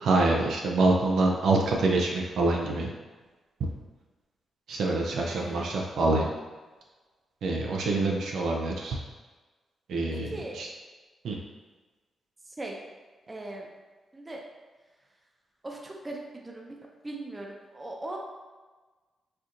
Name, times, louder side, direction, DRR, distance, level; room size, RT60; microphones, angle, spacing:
voice 1, 0.0-2.9 4.7-6.3 7.4-9.0 9.9-10.3 10.6-10.7 11.2-11.4, right 2 dB, 80° right, -1 dB, 0.4 m, -25 dB
voice 2, 5.2-5.8 10.1-10.6 12.4-12.8 13.3-13.7 14.1-14.4 15.6-16.8 17.0-18.2, right 2 dB, 25° right, 0 dB, 0.6 m, -39 dB
4.3 x 2.5 x 2.5 m, 1.3 s
cardioid pair, 70°, 0 cm